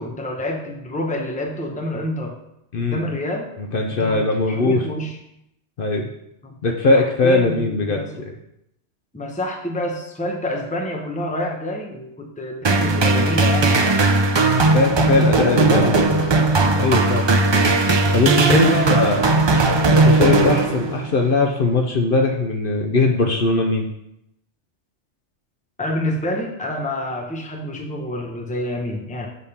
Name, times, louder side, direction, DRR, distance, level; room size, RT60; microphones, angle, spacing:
voice 1, 0.0-2.4 2.8-3.5 3.9-5.2 6.4-6.5 6.9-8.2 9.1-14.1 15.2-16.2 18.4-19.1 25.8-29.3, left 1 dB, 10° left, 2 dB, 0.7 m, -27 dB
voice 2, 2.7-3.0 3.7-4.8 5.8-6.1 6.6-8.3 14.6-16.2 16.7-17.3 18.1-19.3 19.9-23.9, left 3 dB, 55° left, 2 dB, 0.8 m, -20 dB
sound 1, 12.6-21.1, right 3 dB, 45° right, 0.3 m, -17 dB
6.4 x 3.5 x 5.5 m, 0.80 s
omnidirectional pair, 1.2 m